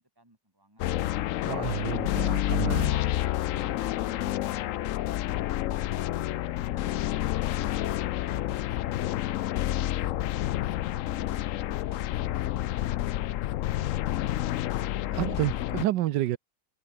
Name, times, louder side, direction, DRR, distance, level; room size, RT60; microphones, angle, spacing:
voice 1, 0.0-1.3 3.2-3.7 7.5-8.5 9.2-13.0 13.4-14.3, right 1 dB, 10° right, 4.0 m, -60 dB
sound 1, 0.8-15.8, left 14 dB, 90° left, 0.7 m, -29 dB
voice 2, 1.4-3.0 15.1-16.4, right 14 dB, 75° right, 1.3 m, -29 dB
omnidirectional pair, 2.0 m